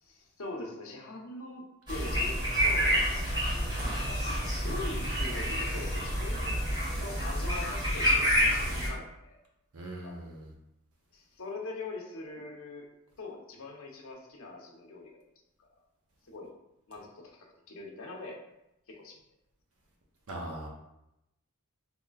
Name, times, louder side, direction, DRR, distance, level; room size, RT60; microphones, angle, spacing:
voice 1, 0.0-3.2 4.1-4.2 4.6-6.6 7.0-9.4 10.0-10.1 11.1-12.9 13.2-15.2 15.6-15.7 16.3-16.5 16.9-18.4 18.9-19.2, left 2 dB, 70° left, 0 dB, 0.7 m, -42 dB
sound 1, 1.9-8.9, equal, 20° right, 1.0 m, -28 dB
voice 2, 9.7-10.5 20.3-20.7, right 1 dB, 80° right, -1 dB, 0.8 m, -40 dB
3.7 x 3.1 x 2.3 m, 0.85 s
head